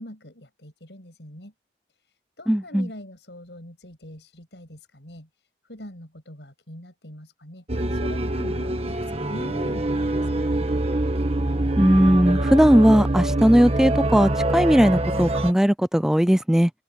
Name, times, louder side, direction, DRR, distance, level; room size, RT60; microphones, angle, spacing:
voice 1, 0.0-1.5 2.4-5.3 5.7-7.6 7.9-10.6, equal, 85° left, 6.8 m, -42 dB
voice 2, 2.5-2.9 11.8-16.7, equal, 5° right, 0.3 m, -18 dB
sound 1, 7.7-15.5, right 1 dB, 35° right, 1.4 m, -24 dB
head